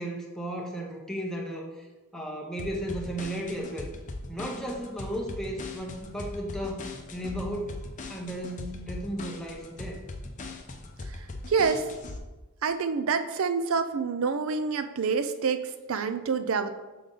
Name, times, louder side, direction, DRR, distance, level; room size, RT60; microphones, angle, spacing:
voice 1, 0.0-1.8 2.1-3.9 4.3-6.9 7.1-7.8 8.1-10.0, right 1 dB, 5° left, -1 dB, 0.8 m, -34 dB
sound 1, 2.6-12.2, left 2 dB, 35° left, 0.6 m, -40 dB
voice 2, 11.5-11.8 12.6-16.7, right 5 dB, 70° right, 9 dB, 0.5 m, -27 dB
6.5 x 3.9 x 3.9 m, 1.1 s
head